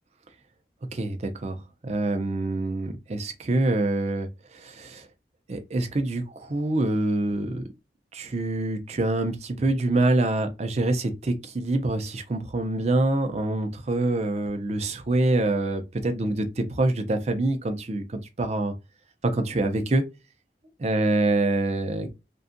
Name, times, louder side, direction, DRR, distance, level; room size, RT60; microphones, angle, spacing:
voice 1, 0.9-1.6 1.8-5.1 5.5-7.6 8.1-18.7 19.2-20.0 20.8-22.1, right 2 dB, 35° right, 0.5 m, -25 dB
2.5 x 2.3 x 2.6 m
head